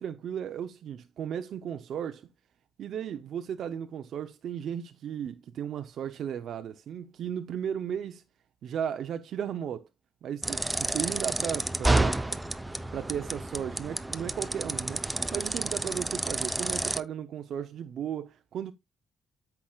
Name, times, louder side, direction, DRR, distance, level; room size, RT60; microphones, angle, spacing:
voice 1, 0.0-2.3 2.8-8.2 8.6-9.9 10.2-12.2 12.9-18.7, right 8 dB, 65° right, 0.7 m, -35 dB
sound 1, 10.4-17.0, right 2 dB, 10° right, 0.8 m, -30 dB
13.5 x 5.9 x 2.4 m
cardioid pair, 90°, 0 cm